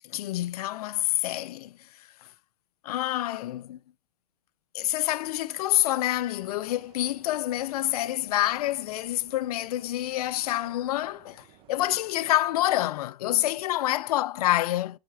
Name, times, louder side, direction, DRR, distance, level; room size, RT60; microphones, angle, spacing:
voice 1, 0.0-2.1 2.8-3.8 4.7-15.0, left 14 dB, 70° left, 0.5 m, -27 dB
sound 1, 6.1-12.9, right 9 dB, 25° right, 0.8 m, -57 dB
10.0 x 4.2 x 4.8 m
supercardioid pair, 150°, 20 cm